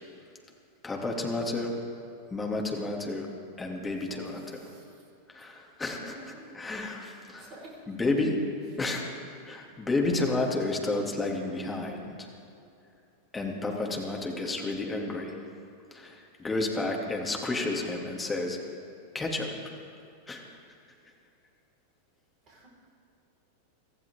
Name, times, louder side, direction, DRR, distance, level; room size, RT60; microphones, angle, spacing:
voice 1, 0.8-1.7 2.3-3.3 3.6-4.4 5.3-7.5 7.9-8.4 8.8-9.0 9.4-12.3 13.3-15.4 15.9-18.6 19.1-19.5 20.3-20.4, left 2 dB, 15° left, 0 dB, 2.7 m, -31 dB
voice 2, 4.0-5.0 5.9-6.4 7.4-7.8 8.6-8.8 22.4-22.7, right 2 dB, 35° right, -4 dB, 5.0 m, -50 dB
24.5 x 14.5 x 3.7 m, 2.6 s
figure-of-eight pair, 90°, 0 cm